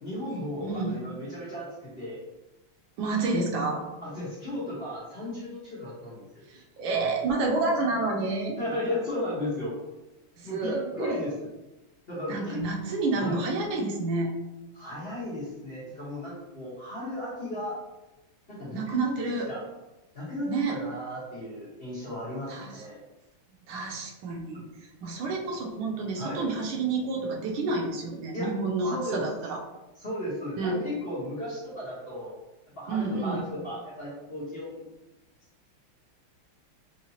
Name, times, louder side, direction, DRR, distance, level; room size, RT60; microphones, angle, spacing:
voice 1, 0.0-2.2 4.0-6.5 8.6-9.7 10.4-11.3 12.1-12.6 13.2-13.4 14.7-17.8 18.5-19.6 20.1-23.0 24.5-24.6 26.2-26.4 28.3-28.5 28.8-29.2 29.9-32.3 32.8-34.9, left 1 dB, 35° left, -8 dB, 1.1 m, -35 dB
voice 2, 0.6-1.0 3.0-3.8 6.8-8.6 10.4-11.2 12.3-14.3 18.7-19.5 20.4-20.8 22.5-22.7 23.7-24.7 25.0-29.6 30.6-30.8 32.9-33.4, right 3 dB, 80° right, 0 dB, 1.5 m, -29 dB
4.8 x 2.7 x 2.7 m, 1.0 s
omnidirectional pair, 2.2 m